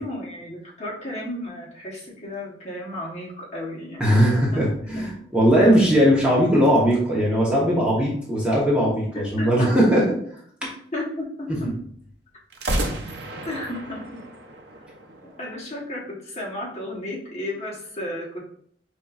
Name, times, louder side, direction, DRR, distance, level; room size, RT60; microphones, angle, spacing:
voice 1, 0.0-4.0 4.3-4.6 4.9-5.1 9.1-9.9 10.9-11.7 13.5-14.2 15.2-18.5, left 1 dB, 35° left, -4 dB, 1.0 m, -33 dB
voice 2, 4.0-10.0 10.6-10.7 11.6-11.7, equal, 5° right, -6 dB, 0.8 m, -19 dB
sound 1, 6.6-8.4 12.5-15.6, right 1 dB, 70° right, 0.6 m, -33 dB
5.2 x 2.9 x 2.4 m, 0.64 s
head